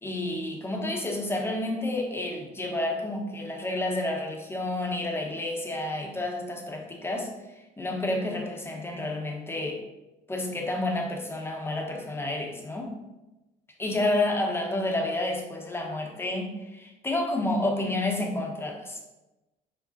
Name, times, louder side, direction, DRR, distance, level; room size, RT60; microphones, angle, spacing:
voice 1, 0.0-7.3 7.8-9.8 10.3-13.0 13.8-19.0, left 2 dB, 15° left, 1 dB, 1.3 m, -30 dB
5.2 x 5.1 x 4.2 m, 1.0 s
cardioid pair, 110°, 17 cm